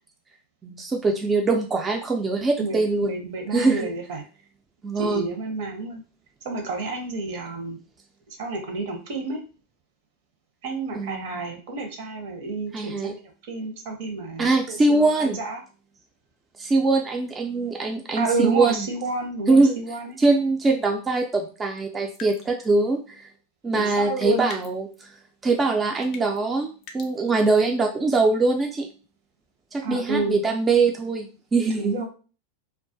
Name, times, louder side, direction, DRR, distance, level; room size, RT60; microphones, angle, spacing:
voice 1, 0.6-3.1 3.5-3.9 4.8-5.2 10.9-11.4 12.7-13.1 14.4-15.4 16.6-18.9 19.5-19.8 20.2-23.3 23.6-25.1 25.4-28.9 29.7-31.9, right 3 dB, 20° right, 2 dB, 0.3 m, -22 dB
voice 2, 2.6-4.2 4.9-6.0 6.4-7.8 8.3-9.4 10.6-15.6 18.1-20.2 23.7-24.5 29.8-30.4 31.6-32.1, right 3 dB, 65° right, 4 dB, 0.7 m, -30 dB
sound 1, 22.1-22.8 24.2-25.0 26.1-26.4 26.8-27.1, left 4 dB, 50° left, 0.4 m, -42 dB
2.3 x 2.1 x 2.6 m, 0.36 s
hypercardioid pair, 115°, 0 cm